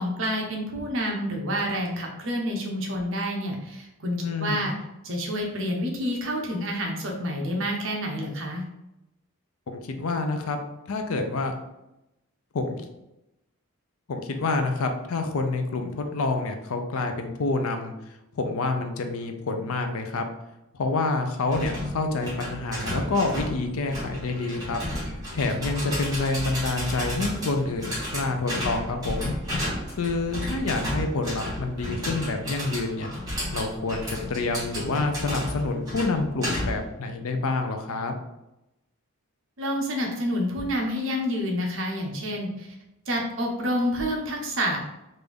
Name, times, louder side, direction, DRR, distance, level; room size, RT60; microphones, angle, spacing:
voice 1, 0.0-4.7 5.0-8.6 39.6-42.7 43.1-44.8, equal, 55° right, 0 dB, 0.8 m, -28 dB
voice 2, 4.2-4.7 9.7-10.6 10.9-11.5 12.5-12.8 14.1-17.9 18.3-20.3 20.7-24.8 25.3-29.3 30.0-33.1 33.5-38.2, left 3 dB, 70° left, 5 dB, 0.5 m, -28 dB
sound 1, 21.5-36.9, equal, 15° right, 1.2 m, -33 dB
3.4 x 2.6 x 3.4 m, 0.90 s
head